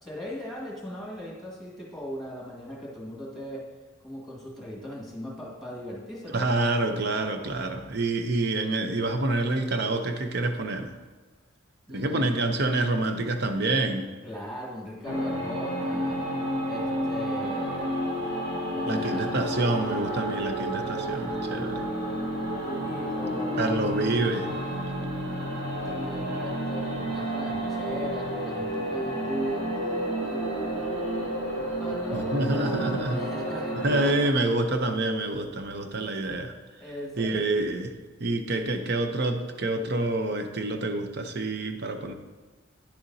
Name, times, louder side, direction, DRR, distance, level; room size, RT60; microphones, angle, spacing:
voice 1, 0.0-3.7 4.0-6.5 11.9-12.4 14.2-16.3 16.7-18.0 18.7-19.4 22.6-23.9 25.8-31.3 31.8-34.3 35.7-35.8 36.8-37.5, equal, ahead, -3 dB, 1.8 m, -38 dB
voice 2, 6.3-10.9 11.9-14.1 18.9-21.8 23.6-24.5 32.1-33.2 33.8-36.5 37.2-37.9 38.2-42.1, right 2 dB, 55° right, 6 dB, 0.7 m, -27 dB
sound 1, 15.0-34.1, right 1 dB, 70° right, 2.4 m, -31 dB
9.9 x 6.8 x 2.7 m, 1.3 s
head